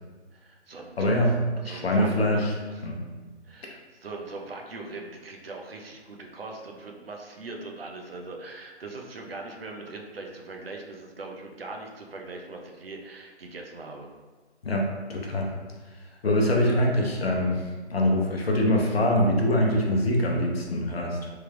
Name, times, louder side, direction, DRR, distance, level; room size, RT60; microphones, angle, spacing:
voice 1, 0.3-1.3 1.6-2.1 2.7-2.9 3.4-14.1, right 3 dB, 60° right, 1 dB, 0.6 m, -41 dB
voice 2, 1.0-1.4 1.7-2.5 2.8-3.0 14.6-15.5 16.2-17.6 17.9-21.3, left 1 dB, 60° left, 0 dB, 0.8 m, -24 dB
3.3 x 2.2 x 3.3 m, 1.3 s
figure-of-eight pair, 160°, 34 cm